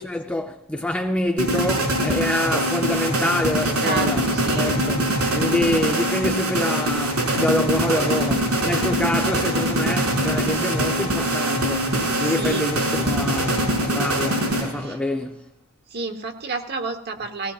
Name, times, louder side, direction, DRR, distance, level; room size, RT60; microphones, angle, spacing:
voice 1, 0.0-5.0 5.3-15.5, left 1 dB, 5° left, 0.6 m, -26 dB
sound 1, 1.4-15.0, right 1 dB, 85° right, 5.4 m, -23 dB
voice 2, 3.6-4.7 12.4-12.6 14.8-15.0 15.9-17.5, right 4 dB, 45° right, 1.2 m, -30 dB
18.0 x 17.5 x 2.4 m
head